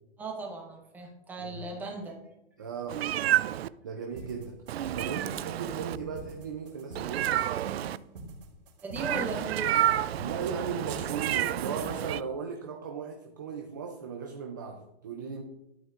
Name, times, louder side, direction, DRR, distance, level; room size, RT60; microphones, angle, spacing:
voice 1, 0.2-2.1 8.8-9.8, right 3 dB, 5° right, 0 dB, 0.9 m, -37 dB
voice 2, 1.4-1.7 2.6-3.0 3.8-4.6 4.9-7.4 10.2-15.4, right 6 dB, 20° right, 4 dB, 0.3 m, -37 dB
Meow, 2.9-3.7 4.7-6.0 7.0-8.0 9.0-12.2, right 12 dB, 80° right, 0.5 m, -29 dB
sound 1, 4.2-12.0, right 3 dB, 60° right, 2.9 m, -44 dB
12.5 x 8.1 x 2.4 m, 0.93 s
hypercardioid pair, 165°, 31 cm